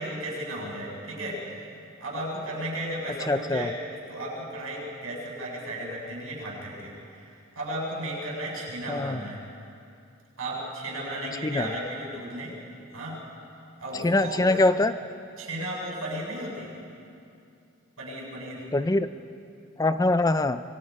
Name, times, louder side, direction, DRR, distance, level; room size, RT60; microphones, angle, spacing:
voice 1, 0.0-1.4 2.0-3.7 4.1-9.4 10.4-12.5 12.9-13.2 13.8-14.6 15.4-16.7 18.0-18.6, right 1 dB, 80° right, -4 dB, 7.5 m, -34 dB
voice 2, 3.3-3.7 8.9-9.2 11.4-11.7 14.0-14.9 18.7-19.1 19.8-20.6, left 2 dB, 15° left, 11 dB, 0.4 m, -23 dB
24.5 x 23.5 x 5.4 m, 2.6 s
head